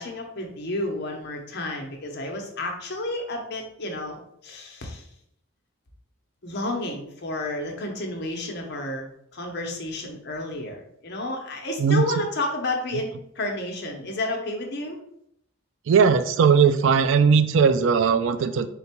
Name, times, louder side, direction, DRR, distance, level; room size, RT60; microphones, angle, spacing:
voice 1, 0.0-5.0 6.4-15.0, left 2 dB, 55° left, 2 dB, 0.8 m, -31 dB
voice 2, 15.9-18.7, right 6 dB, 70° right, 11 dB, 0.3 m, -18 dB
3.9 x 2.2 x 4.3 m, 0.73 s
head